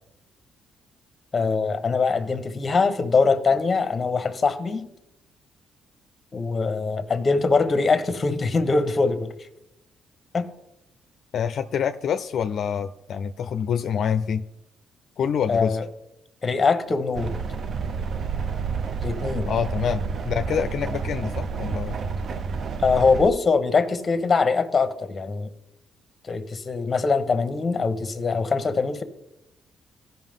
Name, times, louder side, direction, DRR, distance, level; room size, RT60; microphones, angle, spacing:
voice 1, 1.3-4.8 6.3-9.3 10.3-10.5 15.5-15.8 16.4-17.3 19.0-19.5 22.8-25.5 26.2-29.0, left 4 dB, 30° left, 9 dB, 1.1 m, -22 dB
voice 2, 11.3-14.4 15.2-15.8 19.5-22.0, left 7 dB, 65° left, 9 dB, 0.4 m, -26 dB
sound 1, 17.1-23.3, right 5 dB, 55° right, 0.6 m, -29 dB
15.0 x 5.7 x 3.7 m, 0.87 s
cardioid pair, 90°, 0 cm